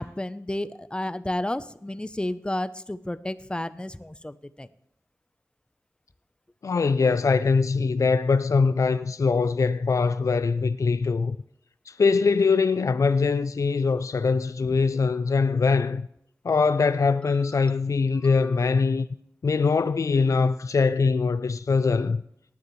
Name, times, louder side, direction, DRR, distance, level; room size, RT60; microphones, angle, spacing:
voice 1, 0.0-4.7 17.5-17.7 18.2-18.6, left 1 dB, 15° left, 0.6 m, -32 dB
voice 2, 6.6-11.4 11.9-16.1 16.4-19.1 19.4-22.2, left 4 dB, 60° left, 0.4 m, -22 dB
18.5 x 9.6 x 3.1 m
wide cardioid pair, 55°, 6 cm